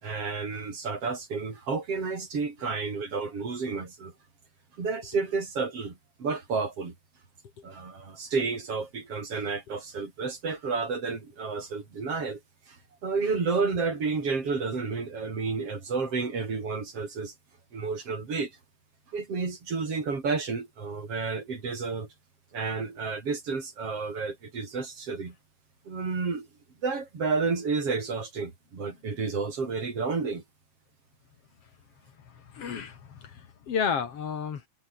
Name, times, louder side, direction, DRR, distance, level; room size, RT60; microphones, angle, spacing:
voice 1, 0.0-4.1 4.8-6.9 7.6-12.4 12.7-17.3 17.7-18.5 19.1-22.1 22.5-25.4 25.9-26.5 26.8-30.4, right 4 dB, 45° right, 5.3 m, -31 dB
voice 2, 32.2-34.7, left 7 dB, 50° left, 2.8 m, -32 dB
omnidirectional pair, 3.6 m